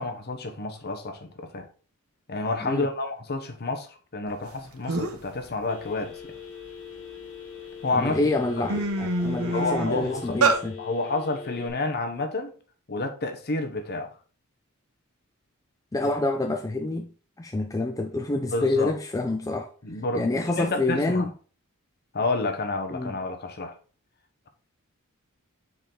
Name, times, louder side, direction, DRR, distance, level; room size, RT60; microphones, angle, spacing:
voice 1, 0.0-1.7 2.3-6.2 7.8-8.3 9.5-10.4 10.8-12.5 12.9-14.1 18.4-18.9 19.8-21.3 22.1-23.7, left 2 dB, 50° left, 1.0 m, -29 dB
sound 1, 4.5-4.6 4.9-5.3 5.8-7.3 7.9-8.1 8.4-10.6, right 3 dB, 80° right, 1.0 m, -26 dB
Telephone, 5.7-11.7, left 7 dB, 80° left, 1.6 m, -42 dB
voice 2, 7.9-10.8 15.9-17.1 17.4-19.7 20.1-21.3 22.9-23.2, left 2 dB, 15° left, 0.4 m, -27 dB
6.8 x 4.8 x 3.9 m
head